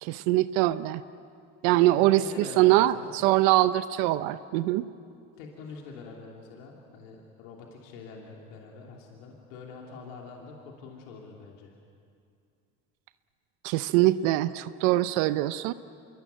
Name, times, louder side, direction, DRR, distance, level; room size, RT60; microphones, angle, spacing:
voice 1, 0.0-1.0 1.6-4.9 13.6-15.7, right 16 dB, 85° right, 13 dB, 0.8 m, -23 dB
voice 2, 1.8-3.2 5.4-11.8, left 4 dB, 85° left, -1 dB, 2.9 m, -44 dB
26.5 x 22.5 x 9.2 m, 2.4 s
supercardioid pair, 75°, 39 cm